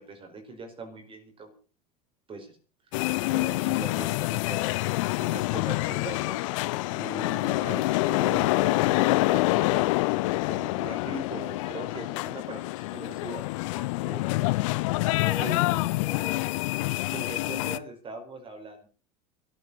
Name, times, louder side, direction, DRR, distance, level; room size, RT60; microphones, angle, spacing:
voice 1, 0.0-1.5 2.3-2.6 3.0-4.6 5.2-6.4 6.9-10.0 10.4-12.6 12.9-13.4 14.1-14.2 15.4-15.7 17.1-18.9, right 3 dB, 25° right, 4 dB, 5.0 m, -40 dB
sound 1, 2.9-17.8, left 21 dB, 50° left, 0.8 m, -27 dB
voice 2, 13.7-14.6 15.2-16.5, left 3 dB, 10° left, 1 dB, 5.5 m, -43 dB
14.0 x 12.0 x 7.0 m, 0.39 s
figure-of-eight pair, 80°, 20 cm